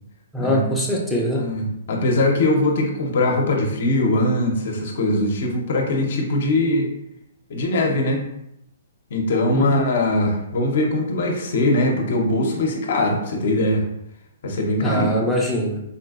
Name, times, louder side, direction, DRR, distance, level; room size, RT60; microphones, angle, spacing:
voice 1, 0.3-1.5 9.5-9.7 14.8-15.8, equal, ahead, -5 dB, 0.5 m, -22 dB
voice 2, 1.3-6.9 7.5-8.2 9.1-13.8 14.4-15.2, left 1 dB, 65° left, 2 dB, 0.7 m, -21 dB
3.8 x 2.5 x 2.4 m, 0.80 s
hypercardioid pair, 150°, 0 cm